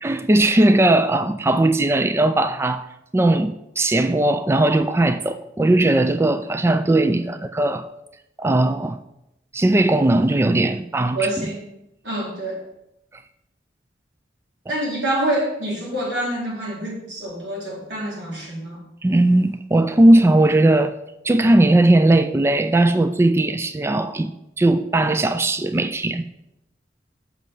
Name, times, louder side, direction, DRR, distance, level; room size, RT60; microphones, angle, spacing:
voice 1, 0.0-2.9 3.1-7.8 8.4-9.0 9.5-11.3 19.0-21.0 21.2-24.3 24.6-26.2, right 1 dB, 15° right, 10 dB, 0.3 m, -18 dB
voice 2, 11.1-11.7 12.0-12.6 14.7-18.8, right 1 dB, 90° right, -5 dB, 3.8 m, -26 dB
7.6 x 6.2 x 5.3 m, 0.85 s
head